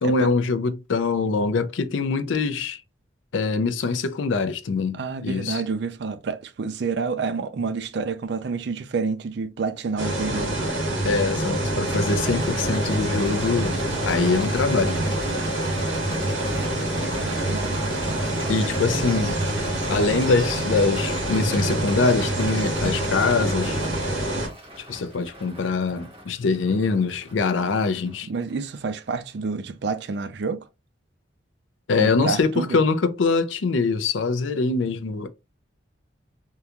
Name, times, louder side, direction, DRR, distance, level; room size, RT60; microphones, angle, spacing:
voice 1, 0.0-2.8 3.3-5.6 11.0-15.0 18.5-19.4 19.9-23.8 24.9-28.3 31.9-35.3, left 4 dB, 80° left, 0.5 m, -23 dB
voice 2, 4.9-10.6 17.1-17.7 28.2-30.6 32.0-32.8, right 4 dB, 60° right, 0.4 m, -29 dB
sound 1, 10.0-24.5, right 1 dB, 90° right, 2.0 m, -26 dB
Rattle, 11.8-29.2, right 1 dB, 30° right, 1.3 m, -41 dB
3.7 x 2.3 x 2.8 m
head